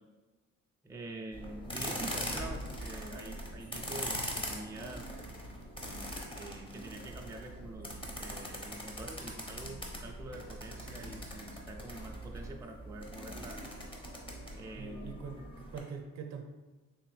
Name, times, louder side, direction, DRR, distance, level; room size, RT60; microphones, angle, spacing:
voice 1, 0.8-5.1 6.3-13.6 14.5-15.2, right 2 dB, 10° right, 2 dB, 0.3 m, -46 dB
sound 1, 1.3-15.8, equal, 15° left, 0.8 m, -41 dB
voice 2, 14.7-16.4, right 5 dB, 60° right, 4 dB, 0.6 m, -43 dB
3.7 x 2.9 x 3.2 m, 1.2 s
cardioid pair, 90°, 30 cm